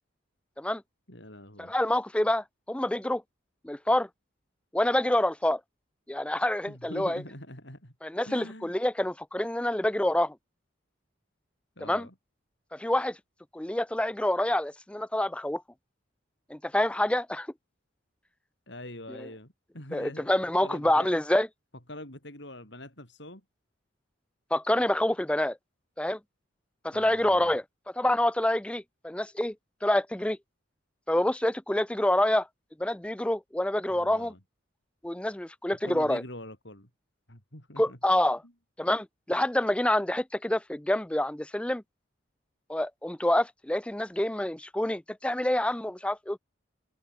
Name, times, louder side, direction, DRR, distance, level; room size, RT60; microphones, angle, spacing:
voice 1, 1.1-1.7 6.7-7.9 8.3-8.8 11.8-12.1 18.7-20.3 20.6-21.2 21.9-23.4 26.9-27.5 33.9-34.4 35.8-36.9 37.3-38.0 38.4-38.5, left 1 dB, 60° left, 8.0 m, -44 dB
voice 2, 1.6-3.2 3.6-4.1 4.7-5.6 6.1-7.2 8.0-10.3 11.9-12.1 12.7-13.2 13.5-15.6 16.5-17.5 19.9-21.5 24.5-25.6 26.0-26.2 26.8-27.6 27.9-29.5 29.8-30.4 31.1-32.5 32.8-34.3 35.0-36.2 37.8-38.4 38.8-41.8 42.7-46.4, left 1 dB, 5° left, 0.4 m, -27 dB
head